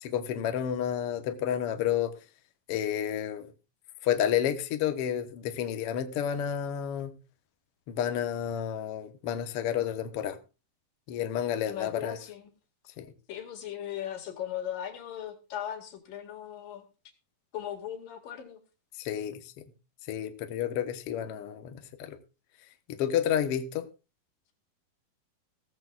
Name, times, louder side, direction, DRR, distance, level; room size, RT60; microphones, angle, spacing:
voice 1, 0.0-2.2 2.7-3.5 4.0-7.1 7.9-10.4 11.1-12.2 13.0-13.1 19.0-19.4 20.1-22.2 22.9-23.8, left 9 dB, 65° left, 1.6 m, -30 dB
voice 2, 11.6-12.4 13.3-16.9 17.5-18.6, left 10 dB, 80° left, 3.6 m, -38 dB
17.0 x 14.0 x 2.4 m
omnidirectional pair, 3.8 m